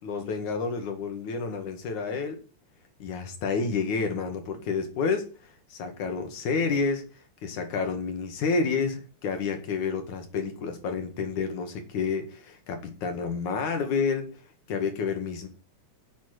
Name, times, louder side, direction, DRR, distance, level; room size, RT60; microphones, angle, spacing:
voice 1, 0.0-2.4 3.0-5.3 5.7-7.0 7.4-14.3 14.7-15.5, left 5 dB, 80° left, 3.5 m, -29 dB
9.3 x 8.9 x 8.0 m
omnidirectional pair, 3.4 m